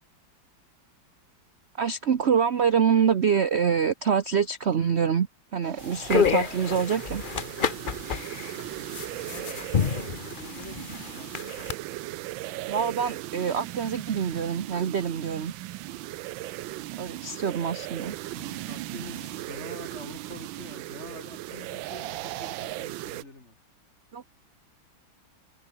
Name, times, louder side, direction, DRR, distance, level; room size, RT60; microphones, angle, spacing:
voice 1, 1.8-5.3 5.5-7.2 12.7-15.5 17.0-18.2 24.1-24.2, right 7 dB, 45° right, 0.9 m, -25 dB
sound 1, 5.6-23.2, right 16 dB, 75° right, 1.3 m, -38 dB
sound 2, 5.8-11.7, left 6 dB, 55° left, 0.5 m, -29 dB
voice 2, 9.2-11.6 18.3-23.6, left 2 dB, 35° left, 4.5 m, -46 dB
omnidirectional pair, 2.2 m